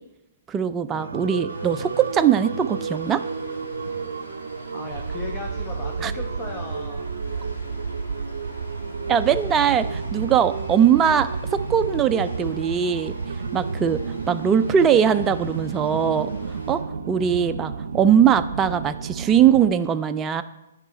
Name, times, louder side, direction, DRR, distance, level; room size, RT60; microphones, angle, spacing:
voice 1, 0.5-3.2 6.0-6.1 9.1-13.1 13.5-16.3 16.7-20.4, right 8 dB, 20° right, 10 dB, 0.4 m, -21 dB
sound 1, 0.9-19.7, right 5 dB, 75° right, 0.5 m, -31 dB
sound 2, 1.5-16.8, left 2 dB, 90° left, 1.7 m, -46 dB
voice 2, 4.7-7.1, left 2 dB, 20° left, 1 dB, 1.0 m, -36 dB
9.7 x 5.6 x 4.1 m, 0.94 s
hypercardioid pair, 140°, 0 cm